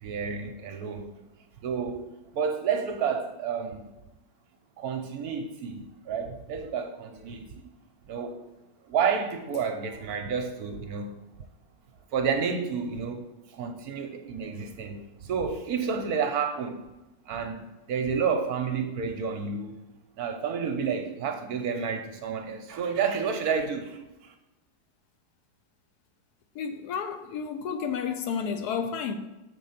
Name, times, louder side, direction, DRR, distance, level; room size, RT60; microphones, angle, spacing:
voice 1, 0.0-1.1 1.6-3.9 4.8-7.7 8.1-8.4 8.9-11.1 12.1-13.3 13.5-16.8 17.3-19.7 20.2-24.3, right 6 dB, 65° right, 1.1 m, -30 dB
voice 2, 26.5-29.2, left 6 dB, 75° left, 1.0 m, -31 dB
6.6 x 3.8 x 5.7 m
omnidirectional pair, 1.9 m